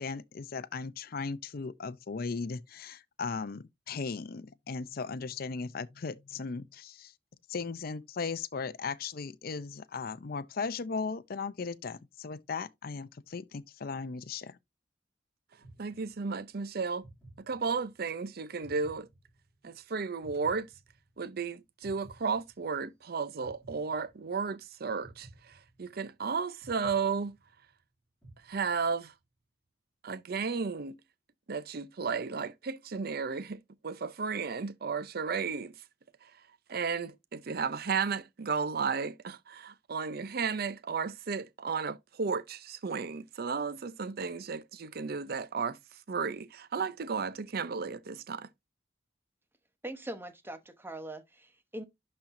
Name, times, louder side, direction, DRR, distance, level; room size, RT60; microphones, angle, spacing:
voice 1, 0.0-7.1 7.5-14.6, left 4 dB, 55° left, 0.5 m, -37 dB
sound 1, 15.6-16.5 17.0-18.1 18.6-19.8 20.2-21.4 21.8-23.0 23.4-24.5 25.0-26.2 26.6-27.8 28.2-29.1, right 1 dB, 5° left, 2.5 m, -55 dB
voice 2, 15.8-17.0 17.5-19.1 19.6-20.7 21.2-27.4 28.5-29.1 30.0-30.9 31.5-35.7 36.7-45.8 46.1-48.5, right 5 dB, 55° right, 0.6 m, -34 dB
voice 3, 49.8-51.8, right 1 dB, 10° right, 0.9 m, -42 dB
11.5 x 4.3 x 2.6 m
head